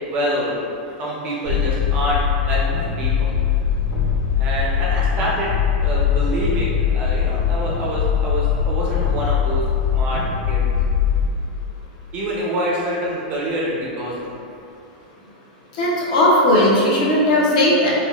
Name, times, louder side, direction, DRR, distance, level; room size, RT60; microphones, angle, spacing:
voice 1, 0.1-0.6 1.0-2.6 3.0-3.3 4.4-5.5 5.8-9.6 9.9-10.6 12.1-14.3, equal, 25° right, -5 dB, 0.4 m, -26 dB
sound 1, 1.4-11.3, left 7 dB, 75° left, 1.4 m, -21 dB
voice 2, 15.8-17.9, left 1 dB, 50° left, -5 dB, 0.6 m, -16 dB
3.4 x 2.1 x 2.3 m, 2.5 s
supercardioid pair, 165°, 5 cm